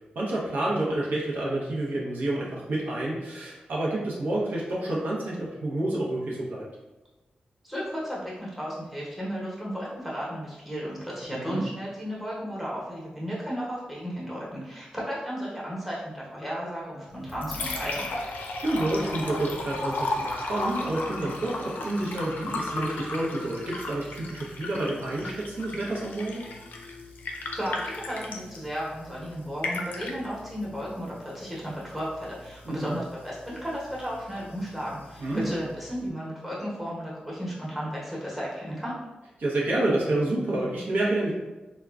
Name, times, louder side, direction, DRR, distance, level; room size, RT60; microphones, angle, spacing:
voice 1, 0.1-6.7 11.3-11.6 18.4-26.4 32.6-33.0 35.2-35.5 39.4-41.3, right 1 dB, 85° right, -5 dB, 0.7 m, -29 dB
voice 2, 7.6-18.1 27.5-39.0, equal, 5° right, -7 dB, 0.9 m, -34 dB
Liquid, 17.1-36.1, left 2 dB, 85° left, 0.4 m, -36 dB
3.5 x 2.2 x 2.3 m, 1.1 s
wide cardioid pair, 120°, 3 cm